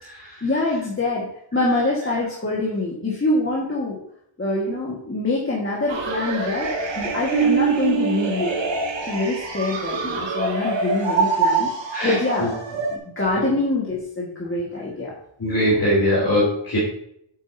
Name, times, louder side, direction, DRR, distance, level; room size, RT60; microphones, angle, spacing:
voice 1, 0.2-1.3 1.5-4.0 4.4-8.5 9.1-11.7 12.0-12.5 12.9-15.1, left 2 dB, 25° left, -5 dB, 1.7 m, -25 dB
sound 1, 5.9-13.0, right 5 dB, 65° right, 1.5 m, -24 dB
voice 2, 11.9-12.5 13.4-13.5 15.4-16.8, equal, 45° left, -7 dB, 3.2 m, -21 dB
8.7 x 8.4 x 2.7 m, 0.70 s
wide cardioid pair, 180°, 48 cm